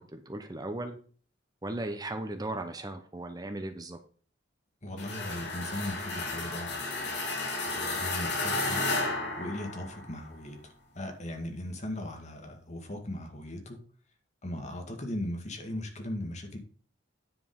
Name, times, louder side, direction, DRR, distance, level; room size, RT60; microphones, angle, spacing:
voice 1, 0.1-1.0 1.6-4.0, right 2 dB, 20° right, 7 dB, 0.9 m, -36 dB
voice 2, 4.8-7.3 7.6-10.6 11.0-13.8 14.4-16.6, left 1 dB, 40° left, 4 dB, 2.0 m, -38 dB
sound 1, 5.0-10.2, left 2 dB, 65° left, 2.7 m, -33 dB
9.8 x 5.4 x 5.3 m, 0.43 s
head